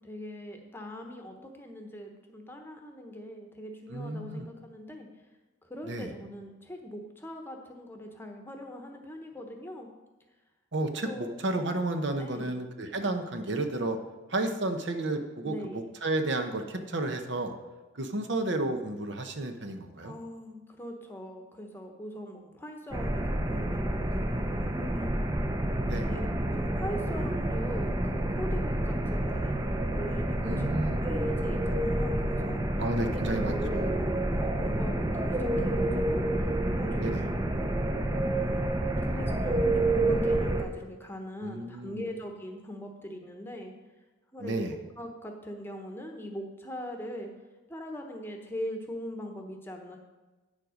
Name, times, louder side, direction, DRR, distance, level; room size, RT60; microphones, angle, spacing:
voice 1, 0.0-5.1 5.6-9.9 10.9-11.4 12.2-12.5 15.4-15.9 20.0-25.1 25.7-29.6 29.9-30.7 31.0-32.6 33.0-33.2 33.5-37.7 38.3-38.6 39.0-43.7 44.3-44.7 45.0-47.3 47.7-50.0, equal, 10° left, 3 dB, 1.0 m, -41 dB
voice 2, 3.9-4.5 5.9-6.1 10.7-14.0 14.3-17.5 18.0-20.1 25.9-26.1 30.4-31.0 32.8-33.9 37.0-37.3 41.4-42.0 44.4-44.7, right 2 dB, 60° right, 6 dB, 0.9 m, -32 dB
sound 1, 22.9-40.6, right 1 dB, 15° right, 0.6 m, -29 dB
9.3 x 7.5 x 5.1 m, 1.2 s
head